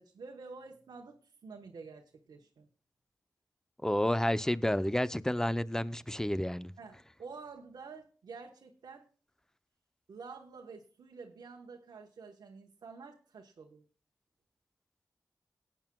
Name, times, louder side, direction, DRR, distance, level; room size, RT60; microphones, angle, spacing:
voice 1, 0.0-2.7 6.8-9.1 10.1-13.8, right 4 dB, 85° right, 1.1 m, -49 dB
voice 2, 3.8-6.7, left 1 dB, 10° left, 0.6 m, -30 dB
18.5 x 9.0 x 2.3 m
cardioid pair, 60°, 7 cm